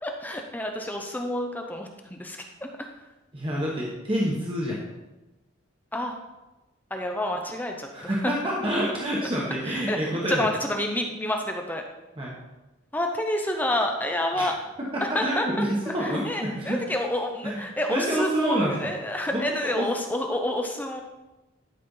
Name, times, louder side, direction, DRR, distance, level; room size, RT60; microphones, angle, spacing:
voice 1, 0.0-2.7 5.9-6.2 6.9-8.3 9.7-10.0 10.3-11.8 12.9-14.5 15.1-15.5 15.9-21.0, left 1 dB, 10° left, 3 dB, 0.6 m, -29 dB
voice 2, 3.3-4.8 7.9-10.5 12.2-12.3 14.4-14.5 14.8-16.8 17.4-18.9 19.3-19.9, equal, 25° right, -4 dB, 1.2 m, -28 dB
12.0 x 4.2 x 5.5 m, 1.0 s
head